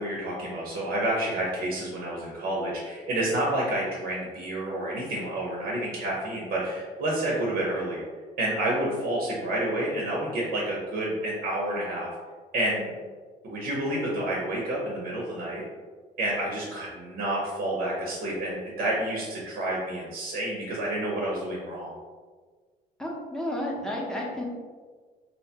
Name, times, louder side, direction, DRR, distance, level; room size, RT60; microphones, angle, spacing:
voice 1, 0.0-8.0 8.4-12.1 12.5-12.9 13.4-15.6 16.2-21.9, right 1 dB, 60° right, -4 dB, 0.7 m, -29 dB
voice 2, 23.0-24.4, left 1 dB, 5° left, -3 dB, 0.6 m, -31 dB
2.8 x 2.1 x 2.8 m, 1.5 s
cardioid pair, 110°, 17 cm